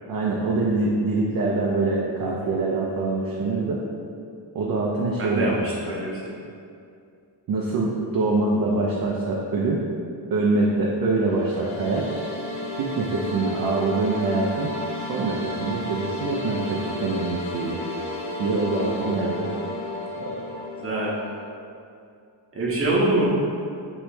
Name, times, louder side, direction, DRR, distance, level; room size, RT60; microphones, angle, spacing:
voice 1, 0.1-3.8 4.5-5.6 7.5-9.9 10.3-12.1 12.8-14.8 15.1-17.8 18.4-19.5 20.2-20.4, right 3 dB, 50° right, -3 dB, 0.5 m, -24 dB
voice 2, 5.2-6.3 18.9-19.6 20.7-21.2 22.5-23.3, right 2 dB, 30° right, -5 dB, 0.9 m, -25 dB
sound 1, 11.2-21.4, left 2 dB, 90° left, 0.7 m, -33 dB
3.1 x 3.1 x 4.7 m, 2.5 s
cardioid pair, 130°, 46 cm